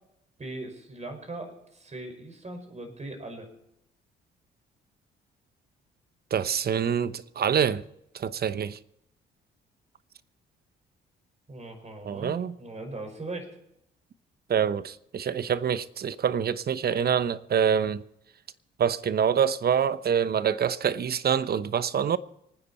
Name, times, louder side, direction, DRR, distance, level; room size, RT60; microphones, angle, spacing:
voice 1, 0.4-3.5 11.5-13.6, right 2 dB, 35° right, 5.4 m, -39 dB
voice 2, 6.3-7.8 8.1-8.8 12.0-12.5 14.5-18.0 18.8-22.2, right 8 dB, 50° right, 0.9 m, -26 dB
24.5 x 9.8 x 4.3 m
supercardioid pair, 60°, 21 cm